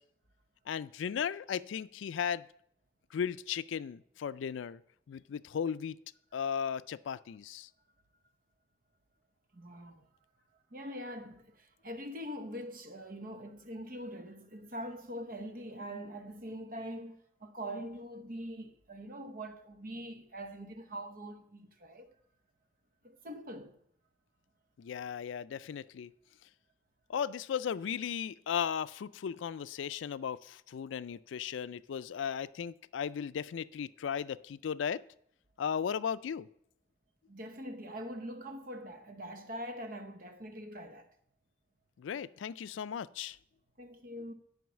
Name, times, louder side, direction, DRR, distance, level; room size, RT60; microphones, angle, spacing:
voice 1, 0.7-2.5 3.1-4.8 5.1-6.0 6.3-7.7 24.8-26.1 27.1-35.0 35.6-36.5 42.0-43.4, left 7 dB, 80° left, 0.3 m, -36 dB
voice 2, 9.5-10.1 10.7-22.2 23.0-23.8 37.3-41.1 43.8-44.3, equal, 45° right, 0.9 m, -43 dB
9.3 x 5.5 x 7.1 m
head